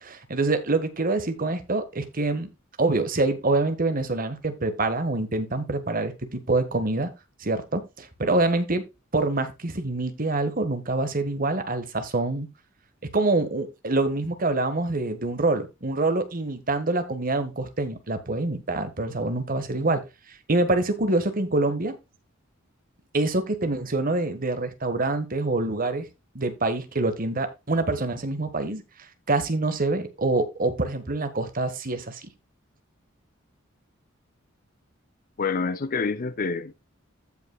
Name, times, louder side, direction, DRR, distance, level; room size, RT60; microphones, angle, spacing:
voice 1, 0.0-2.5 2.8-7.1 7.4-8.8 9.1-12.5 13.1-20.0 20.5-22.0 23.1-26.1 26.3-28.8 29.3-32.2, right 2 dB, 45° right, 1.5 m, -25 dB
voice 2, 35.4-36.7, left 4 dB, 45° left, 0.5 m, -27 dB
15.0 x 5.7 x 2.3 m
head